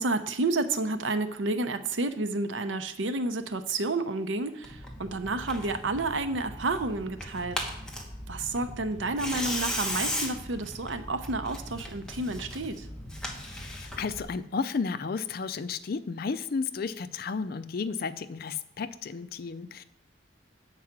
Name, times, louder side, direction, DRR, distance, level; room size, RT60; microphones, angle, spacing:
voice 1, 0.0-7.6 8.3-12.9, right 2 dB, 85° right, 10 dB, 0.7 m, -30 dB
Tearing, 4.6-14.2, left 1 dB, 5° left, 1.1 m, -37 dB
voice 2, 13.4-19.8, left 5 dB, 55° left, 13 dB, 0.4 m, -33 dB
7.6 x 4.8 x 5.9 m, 0.73 s
head